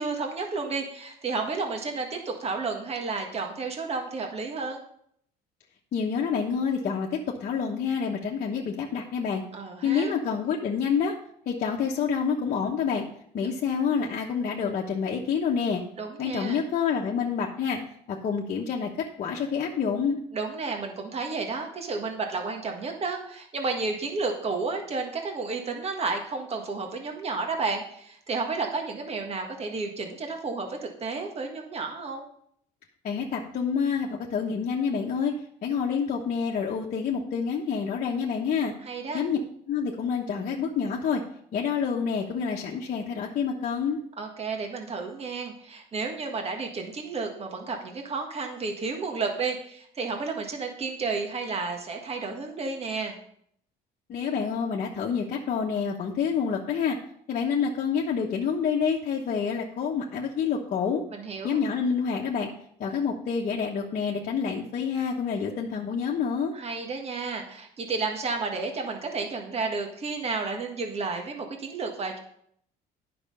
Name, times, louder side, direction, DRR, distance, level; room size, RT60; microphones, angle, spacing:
voice 1, 0.0-4.8 9.5-10.1 16.0-16.6 20.3-32.2 38.8-39.2 44.2-53.2 61.1-61.6 66.5-72.2, right 4 dB, 35° right, 3 dB, 1.6 m, -32 dB
voice 2, 5.9-9.4 9.8-11.1 11.5-13.0 13.3-15.8 16.2-17.8 18.1-20.2 33.0-35.3 35.6-38.7 39.1-39.4 39.7-41.2 41.5-44.0 54.1-57.0 57.3-61.0 61.4-62.5 62.8-66.5, left 6 dB, 50° left, -3 dB, 1.1 m, -28 dB
9.8 x 6.0 x 5.4 m, 0.67 s
cardioid pair, 110°, 17 cm